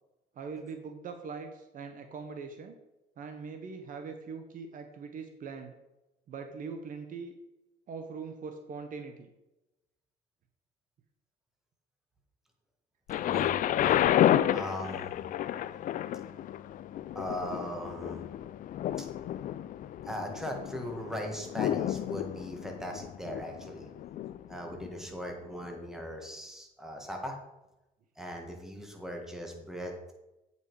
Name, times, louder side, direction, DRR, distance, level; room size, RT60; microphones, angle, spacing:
voice 1, 0.3-2.8 3.2-5.7 6.3-7.3 7.9-9.3, right 5 dB, 50° right, 6 dB, 1.0 m, -41 dB
Thunder, 13.1-24.9 25.7-25.8, left 11 dB, 55° left, 0.4 m, -31 dB
voice 2, 13.2-14.0 14.5-15.2 17.1-18.2 19.0-19.1 20.0-23.9 24.5-27.4 28.2-30.1, equal, 5° right, 1 dB, 1.7 m, -39 dB
8.4 x 5.5 x 4.7 m, 0.97 s
cardioid pair, 110°, 17 cm